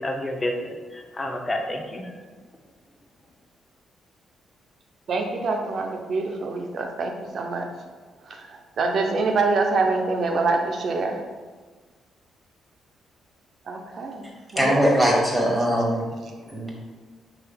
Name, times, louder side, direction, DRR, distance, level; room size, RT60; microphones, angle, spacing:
voice 1, 0.0-2.1, left 1 dB, 25° left, 3 dB, 0.6 m, -29 dB
voice 2, 5.1-7.7 8.3-11.2 13.7-14.2 14.5-14.8, right 3 dB, 55° right, 3 dB, 0.5 m, -25 dB
voice 3, 14.6-16.0 16.5-16.7, equal, 10° right, -2 dB, 1.2 m, -21 dB
4.6 x 3.2 x 2.2 m, 1.4 s
hypercardioid pair, 40°, 0 cm